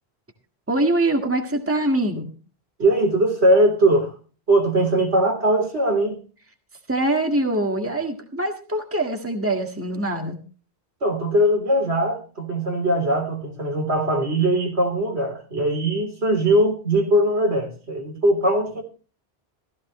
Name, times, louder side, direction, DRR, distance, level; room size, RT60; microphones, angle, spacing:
voice 1, 0.7-2.3 6.9-10.4, right 1 dB, 10° right, 4 dB, 1.7 m, -23 dB
voice 2, 2.8-4.1 4.5-6.2 11.0-18.8, right 1 dB, 85° right, 3 dB, 3.7 m, -20 dB
15.0 x 15.0 x 3.1 m, 0.36 s
omnidirectional pair, 1.1 m